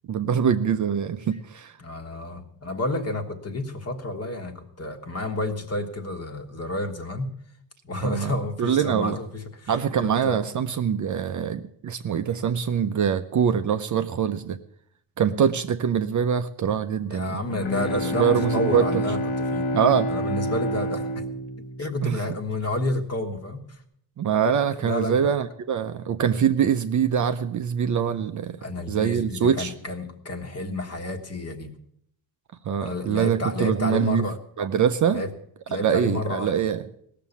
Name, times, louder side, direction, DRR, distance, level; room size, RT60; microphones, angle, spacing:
voice 1, 0.1-1.8 8.0-9.2 9.7-14.6 15.2-17.4 18.0-18.9 19.7-20.1 22.0-22.2 24.2-28.6 28.9-29.7 32.6-34.2 34.6-35.2 35.8-36.9, right 8 dB, 40° right, 8 dB, 0.6 m, -24 dB
voice 2, 1.8-7.3 7.8-9.7 10.0-10.4 17.1-19.7 20.1-21.2 21.8-23.8 24.8-25.4 28.6-31.7 32.8-34.4 35.1-35.3 35.7-36.5, left 2 dB, 30° left, 6 dB, 1.5 m, -30 dB
Bowed string instrument, 17.2-22.6, equal, 80° left, 1.7 m, -28 dB
17.5 x 6.8 x 7.1 m, 0.70 s
cardioid pair, 130°, 48 cm